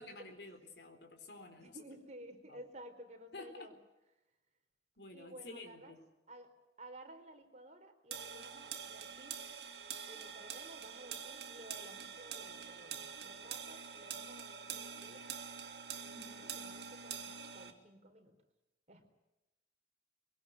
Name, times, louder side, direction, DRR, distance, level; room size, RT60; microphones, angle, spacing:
voice 1, 0.0-1.8 2.5-2.6 3.3-3.7 5.0-6.0 16.1-16.6, left 2 dB, 70° left, 6 dB, 4.0 m, -51 dB
voice 2, 1.5-3.7 5.1-5.9 6.3-9.4 10.1-15.3 16.0-18.3 18.9-19.1, right 1 dB, 40° right, 5 dB, 4.0 m, -55 dB
sound 1, 8.1-17.7, right 7 dB, 70° right, 2.8 m, -46 dB
23.5 x 18.5 x 9.2 m, 0.96 s
head